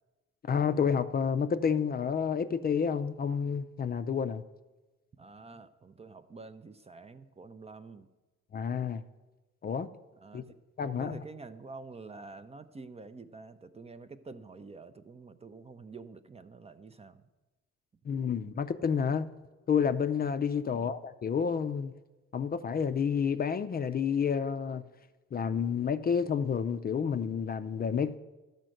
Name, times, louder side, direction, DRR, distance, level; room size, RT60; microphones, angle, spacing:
voice 1, 0.4-4.4 8.5-9.0 9.6-9.9 10.3-10.4 10.8-11.2 18.0-19.3 19.7-21.9 22.3-24.8 25.3-28.2, left 6 dB, 30° left, 10 dB, 0.5 m, -29 dB
voice 2, 5.2-8.1 10.2-17.2 20.6-20.9, right 4 dB, 20° right, 11 dB, 0.5 m, -48 dB
12.5 x 5.2 x 7.7 m, 1.1 s
cardioid pair, 110°, 29 cm